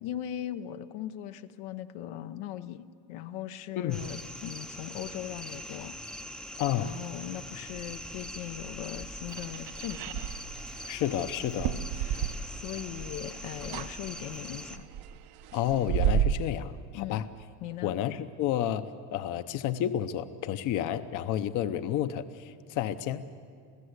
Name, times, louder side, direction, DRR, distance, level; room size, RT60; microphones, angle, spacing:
voice 1, 0.0-5.9 6.7-10.3 12.0-14.9 16.9-17.2 17.6-18.0, left 11 dB, 85° left, 9 dB, 1.0 m, -39 dB
sound 1, 3.9-14.8, equal, ahead, 0.6 m, -42 dB
voice 2, 6.6-6.9 10.9-11.8 15.5-17.3 17.8-23.3, left 11 dB, 55° left, 11 dB, 0.9 m, -31 dB
sound 2, 9.3-13.0 13.2-13.9 14.3-16.3, right 10 dB, 70° right, 1.0 m, -31 dB
29.0 x 15.0 x 8.1 m, 2.3 s
cardioid pair, 150°, 37 cm